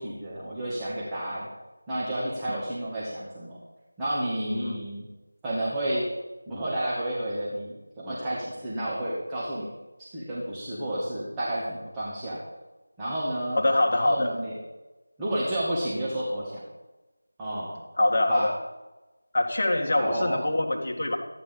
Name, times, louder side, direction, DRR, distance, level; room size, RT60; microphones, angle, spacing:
voice 1, 0.0-1.5 1.9-3.6 4.0-5.0 5.4-6.1 6.5-9.7 10.0-12.4 13.0-13.6 13.9-14.5 15.2-16.6 17.4-17.7 18.3-18.5 19.9-20.4, right 1 dB, 10° right, -8 dB, 2.0 m, -31 dB
voice 2, 4.5-4.8 13.6-14.3 18.0-18.5 19.3-21.2, left 1 dB, 40° left, 2 dB, 1.8 m, -24 dB
14.0 x 9.7 x 5.4 m, 1.1 s
figure-of-eight pair, 170°, 0 cm